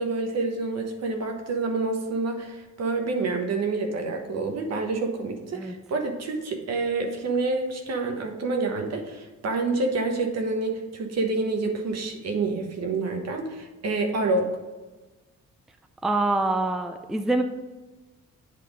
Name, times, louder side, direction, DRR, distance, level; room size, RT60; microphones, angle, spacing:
voice 1, 0.0-14.5, right 3 dB, 60° right, 4 dB, 1.2 m, -28 dB
voice 2, 16.0-17.4, right 2 dB, ahead, 6 dB, 0.4 m, -25 dB
8.5 x 3.5 x 4.9 m, 1.2 s
cardioid pair, 90°, 30 cm